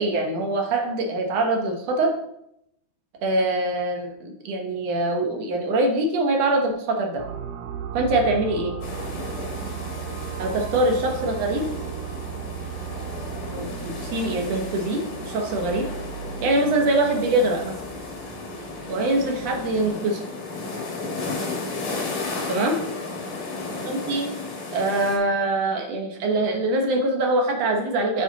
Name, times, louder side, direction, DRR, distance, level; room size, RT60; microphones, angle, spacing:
voice 1, 0.0-2.1 3.2-7.2 7.9-8.8 10.4-11.7 13.5-15.9 16.4-17.8 18.9-20.2 22.5-22.8 23.9-24.3 24.7-28.2, right 2 dB, 65° right, 2 dB, 2.1 m, -23 dB
sound 1, 7.2-19.8, right 8 dB, 85° right, 2.2 m, -36 dB
sound 2, 8.8-25.2, left 3 dB, 80° left, 3.5 m, -34 dB
8.2 x 8.1 x 4.0 m, 0.77 s
omnidirectional pair, 3.5 m